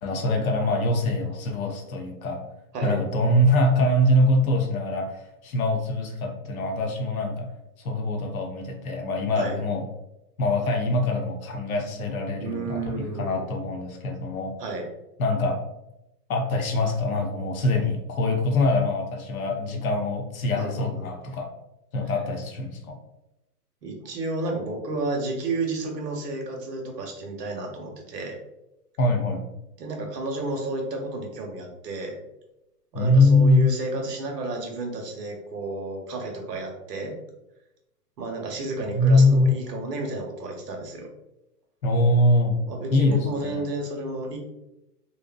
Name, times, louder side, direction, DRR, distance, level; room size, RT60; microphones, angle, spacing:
voice 1, 0.0-2.4 2.8-7.5 7.8-9.8 10.4-14.5 15.2-15.6 16.3-21.5 21.9-23.0 29.0-29.4 32.9-33.6 38.8-39.5 41.8-42.6 42.9-43.7, left 1 dB, 60° left, 2 dB, 0.7 m, -23 dB
voice 2, 12.4-13.5 14.6-14.9 20.6-21.1 23.8-28.4 29.8-32.2 32.9-37.2 38.2-41.1 42.7-44.4, right 2 dB, 80° right, 2 dB, 0.9 m, -32 dB
2.7 x 2.1 x 2.3 m, 0.92 s
hypercardioid pair, 145°, 48 cm